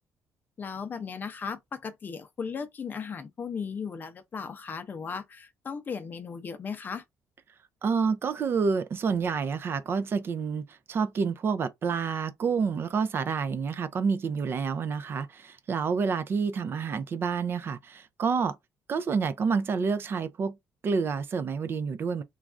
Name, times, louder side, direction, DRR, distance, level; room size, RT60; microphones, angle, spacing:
voice 1, 0.6-7.0, left 6 dB, 35° left, 0.5 m, -36 dB
voice 2, 7.8-18.5 18.9-20.6 20.8-22.2, right 5 dB, 45° right, 0.4 m, -28 dB
3.2 x 2.3 x 2.4 m
cardioid pair, 125°, 6 cm